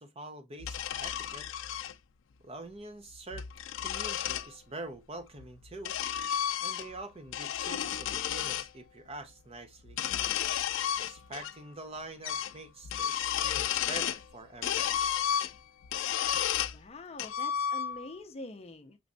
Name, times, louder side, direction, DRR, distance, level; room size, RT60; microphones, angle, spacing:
voice 1, 0.0-1.5 2.4-3.5 3.8-6.0 6.6-10.0 11.0-15.0, right 2 dB, 30° right, 0.7 m, -45 dB
sound 1, 0.6-1.9 3.1-4.5 5.4-7.0 7.3-8.7 9.9-11.5 11.8-11.9 12.2-12.6 12.8-14.2 14.6-16.8 17.2-18.1, left 9 dB, 85° left, 0.4 m, -32 dB
voice 2, 16.4-19.0, left 2 dB, 35° left, 0.5 m, -45 dB
6.0 x 3.2 x 2.6 m
head